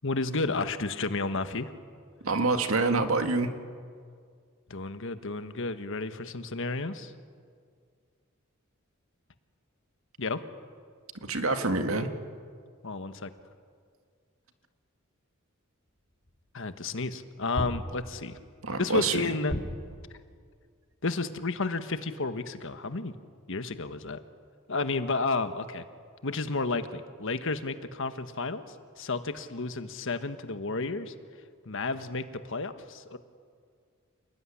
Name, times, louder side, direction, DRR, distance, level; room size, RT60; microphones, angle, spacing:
voice 1, 0.0-1.7 4.7-7.1 10.2-10.4 12.8-13.3 16.5-18.4 18.8-19.5 21.0-23.1 23.5-24.2 24.7-25.8 26.2-31.1 31.6-33.2, left 3 dB, 65° left, 10 dB, 1.4 m, -32 dB
voice 2, 2.2-3.5 11.2-12.1 18.6-19.3, right 3 dB, 75° right, 7 dB, 2.1 m, -26 dB
sound 1, 16.3-16.4 17.5-18.4 19.5-20.2, equal, 40° left, 3.1 m, -35 dB
29.0 x 19.5 x 10.0 m, 2.1 s
head